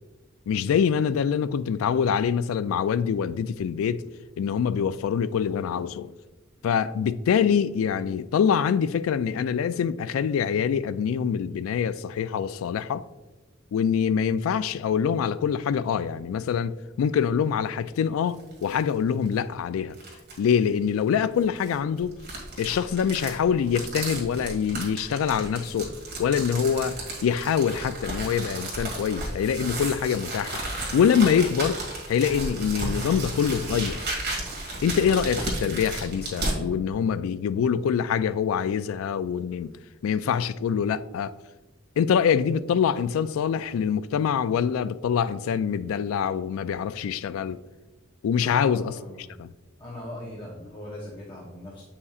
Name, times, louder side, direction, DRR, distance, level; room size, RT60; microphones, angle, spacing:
voice 1, 0.5-4.0 4.4-6.1 6.6-13.0 13.7-20.0 20.4-22.2 22.6-30.6 30.9-31.8 32.1-34.0 34.8-39.7 40.0-41.3 42.0-47.6 48.2-49.5, left 7 dB, 90° left, 0.3 m, -25 dB
sound 1, 18.3-18.8 19.3-19.4 19.9-20.5 21.4-36.6, right 2 dB, 55° right, 1.9 m, -34 dB
voice 2, 48.4-49.4 49.8-51.8, left 1 dB, 25° left, 0.9 m, -39 dB
8.0 x 5.5 x 2.4 m
head